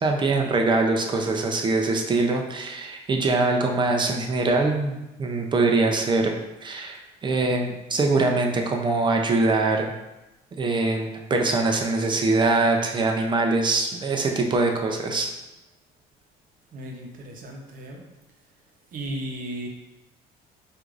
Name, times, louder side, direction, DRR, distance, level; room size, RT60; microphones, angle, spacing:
voice 1, 0.0-6.3 6.6-9.9 10.6-15.3, right 3 dB, 30° right, 2 dB, 0.5 m, -23 dB
voice 2, 16.7-18.0 18.9-19.7, right 1 dB, 55° right, 0 dB, 0.8 m, -35 dB
4.5 x 2.6 x 2.5 m, 0.99 s
cardioid pair, 110°, 17 cm